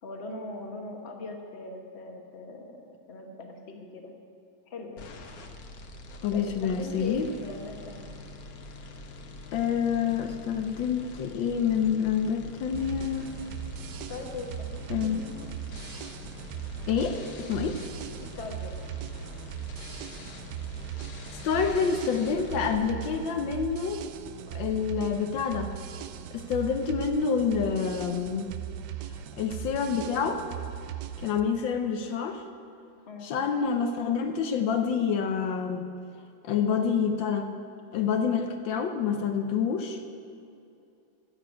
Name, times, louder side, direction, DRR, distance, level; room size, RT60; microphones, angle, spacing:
voice 1, 0.0-4.1 4.7-5.1 6.3-8.2 14.1-15.5 18.4-18.8 21.6-22.0 33.1-33.4 36.6-36.8, left 3 dB, 40° left, 3 dB, 1.4 m, -40 dB
sound 1, 5.0-22.8, left 2 dB, 55° left, 1.4 m, -45 dB
voice 2, 6.2-7.3 9.5-13.3 14.9-15.3 16.9-17.8 21.4-24.1 24.5-25.7 26.3-28.5 29.4-30.4 31.2-32.4 33.2-35.9 36.4-37.5 37.9-40.0, left 6 dB, 80° left, 6 dB, 1.5 m, -27 dB
sound 2, 12.7-31.4, right 10 dB, 70° right, 1.1 m, -39 dB
12.0 x 6.9 x 9.1 m, 2.6 s
omnidirectional pair, 2.1 m